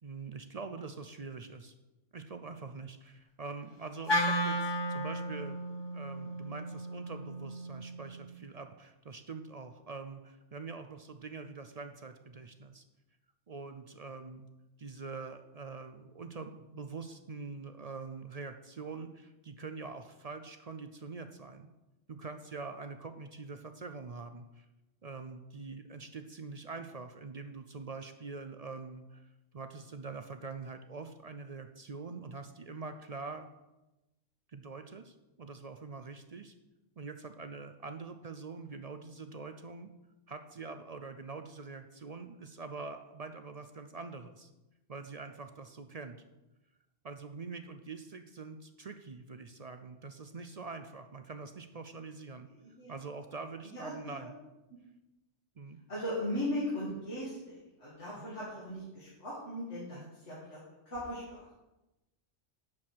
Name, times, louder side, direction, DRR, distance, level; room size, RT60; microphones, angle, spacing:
voice 1, 0.0-1.7 2.1-5.6 5.9-12.8 13.5-14.5 14.8-21.7 22.1-24.7 25.0-33.5 34.5-36.5 37.0-39.9 40.3-44.5 44.9-46.2 47.0-52.5 52.9-54.4 55.6-55.8 58.1-58.3 59.9-60.1, right 4 dB, 45° right, 8 dB, 0.5 m, -44 dB
Wind instrument woodwind instrument, 4.1-8.3, equal, 25° left, 0.7 m, -34 dB
voice 2, 52.6-52.9 53.7-53.9 54.2-54.3 55.9-60.6 60.9-61.5, left 1 dB, 75° left, -8 dB, 2.7 m, -38 dB
10.5 x 4.8 x 7.4 m, 1.0 s
omnidirectional pair, 1.2 m